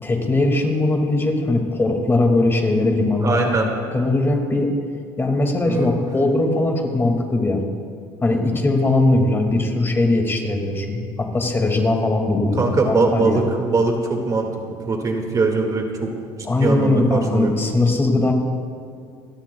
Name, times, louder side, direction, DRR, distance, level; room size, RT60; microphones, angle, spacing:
voice 1, 0.0-4.7 5.2-7.6 8.2-13.5 16.5-18.3, left 2 dB, 20° left, 3 dB, 2.1 m, -20 dB
voice 2, 3.2-3.7 5.7-5.9 12.6-14.5 14.9-16.1 16.4-17.5, right 3 dB, 30° right, 2 dB, 1.9 m, -21 dB
27.5 x 13.0 x 2.3 m, 2.2 s
supercardioid pair, 95°, 11 cm